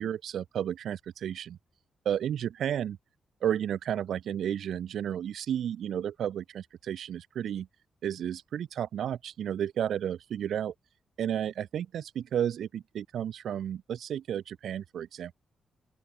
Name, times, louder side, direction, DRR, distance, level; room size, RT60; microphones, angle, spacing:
voice 1, 0.0-1.6 2.0-3.0 3.4-7.7 8.0-10.7 11.2-15.3, right 9 dB, 75° right, 2.7 m, -32 dB
open air
wide cardioid pair, 140°, 0 cm